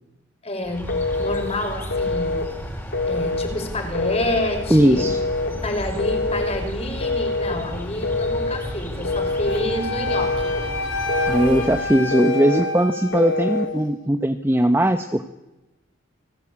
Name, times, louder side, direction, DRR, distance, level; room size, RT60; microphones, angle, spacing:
voice 1, 0.4-0.9 1.2-2.4 3.0-5.1 5.4-10.5, left 1 dB, 30° left, 5 dB, 5.4 m, -28 dB
sound 1, 0.6-12.0, equal, 10° left, 5.2 m, -33 dB
Telephone, 0.9-1.5 1.9-2.5 2.9-3.5 3.9-4.5 5.0-5.5 6.0-6.6 7.0-7.6 8.0-8.6 9.0-9.6 10.1-10.6 11.1-11.7 12.1-12.7 13.1-13.7, left 3 dB, 60° left, 3.3 m, -25 dB
voice 2, 4.7-5.2 11.3-15.3, right 1 dB, 10° right, 7 dB, 1.0 m, -19 dB
Wind instrument woodwind instrument, 9.4-13.7, left 1 dB, 90° left, 5.1 m, -29 dB
29.0 x 19.0 x 8.8 m, 1.0 s
head